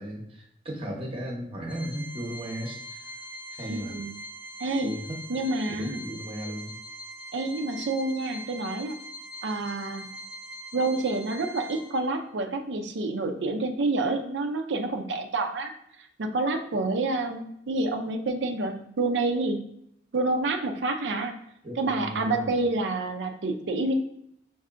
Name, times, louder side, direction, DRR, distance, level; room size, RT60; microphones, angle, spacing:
voice 1, 0.0-3.1 3.5-3.9 4.8-5.2 5.7-6.8 21.6-22.6, equal, 30° right, 0 dB, 0.9 m, -36 dB
Organ, 1.7-12.3, right 1 dB, 10° right, 0.4 m, -42 dB
voice 2, 3.7-4.1 4.6-4.9 5.3-6.0 7.3-9.0 9.4-10.2 10.7-19.6 20.1-21.4 21.8-23.9, right 2 dB, 75° right, 6 dB, 0.5 m, -28 dB
5.5 x 2.6 x 2.5 m, 0.74 s
head